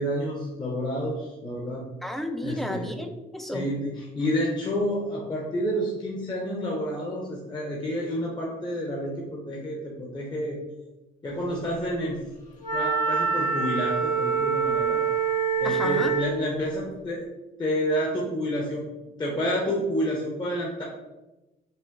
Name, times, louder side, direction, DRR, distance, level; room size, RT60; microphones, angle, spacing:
voice 1, 0.0-1.8 2.4-2.9 3.5-10.6 11.2-12.2 12.7-15.0 15.6-17.3 17.6-18.8 19.2-20.8, equal, 25° left, -3 dB, 0.9 m, -29 dB
voice 2, 2.0-3.7 15.6-16.2, equal, ahead, 5 dB, 0.4 m, -32 dB
Wind instrument woodwind instrument, 12.6-16.4, right 5 dB, 50° left, 1.3 m, -25 dB
5.5 x 2.0 x 3.7 m, 1.0 s
cardioid pair, 110°, 17 cm